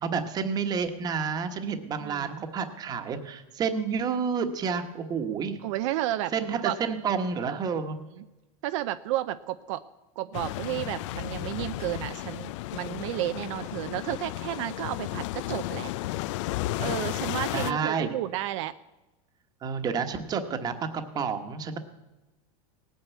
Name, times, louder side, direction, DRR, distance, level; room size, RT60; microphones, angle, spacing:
voice 1, 0.0-5.6 6.3-8.0 17.5-18.2 19.6-20.7 21.1-21.8, right 6 dB, 25° right, 8 dB, 1.2 m, -29 dB
voice 2, 2.0-2.4 5.6-6.8 8.2-8.3 8.6-9.8 10.2-15.9 16.8-18.7, right 14 dB, 65° right, 11 dB, 0.6 m, -32 dB
sound 1, 10.3-17.7, left 17 dB, 65° left, 0.4 m, -33 dB
18.0 x 9.2 x 8.2 m, 1.0 s
supercardioid pair, 165°, 17 cm